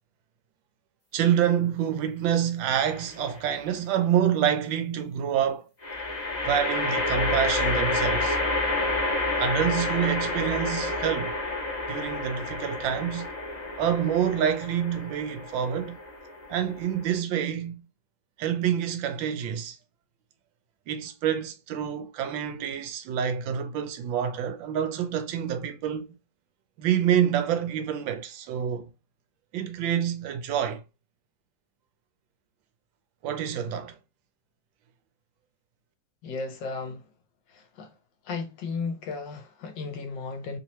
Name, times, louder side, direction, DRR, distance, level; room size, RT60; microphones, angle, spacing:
voice 1, 1.1-5.7 6.5-8.4 9.4-11.4 11.9-13.3 13.8-16.0 16.5-17.8 18.4-19.8 20.9-26.1 26.8-28.9 29.5-30.8 33.2-33.9, right 9 dB, 80° right, 1.4 m, -27 dB
sound 1, 2.7-3.3 5.8-17.2, left 2 dB, 30° left, 0.8 m, -29 dB
voice 2, 36.2-37.0 37.8-37.9 38.3-40.6, left 4 dB, 70° left, 1.3 m, -34 dB
3.5 x 2.9 x 2.9 m
omnidirectional pair, 2.1 m